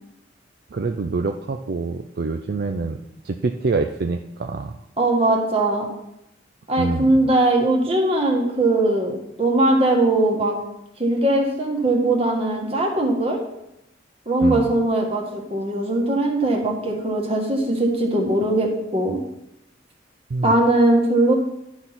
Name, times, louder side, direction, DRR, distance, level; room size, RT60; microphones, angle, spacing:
voice 1, 0.7-3.0 3.2-4.8 6.8-7.3 14.4-14.7 20.3-20.5, right 3 dB, 55° right, 6 dB, 0.4 m, -26 dB
voice 2, 5.0-5.9 6.7-10.5 11.0-13.4 14.2-19.2 20.4-21.3, right 2 dB, 30° right, 1 dB, 1.6 m, -20 dB
11.0 x 4.1 x 6.0 m, 0.85 s
head